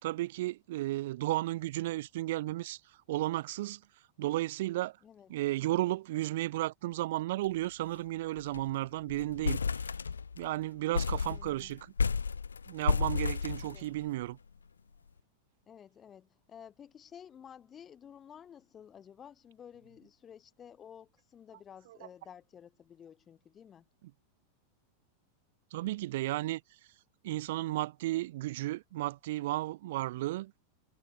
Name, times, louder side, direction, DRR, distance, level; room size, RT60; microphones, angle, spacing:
voice 1, 0.0-2.8 3.1-3.8 4.2-5.0 5.3-9.6 10.4-11.9 12.7-14.4 25.7-26.6 27.2-30.5, right 16 dB, 60° right, 3.3 m, -33 dB
sound 1, 7.4-7.7 8.0-8.1 8.4-8.7 9.1-10.5 10.9-14.2, left 5 dB, 85° left, 2.2 m, -32 dB
voice 2, 11.3-11.7 13.6-13.9 15.7-23.8, left 8 dB, 25° left, 7.7 m, -53 dB
figure-of-eight pair, 95°, 0 cm